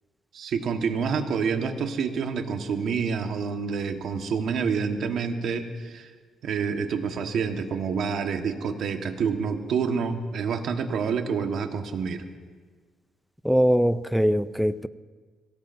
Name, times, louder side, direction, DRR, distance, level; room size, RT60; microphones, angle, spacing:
voice 1, 0.3-6.1 6.4-12.2, right 6 dB, 70° right, 5 dB, 1.4 m, -28 dB
voice 2, 13.4-14.9, equal, ahead, 14 dB, 0.5 m, -22 dB
23.0 x 17.5 x 2.7 m, 1.5 s
cardioid pair, 90°, 0 cm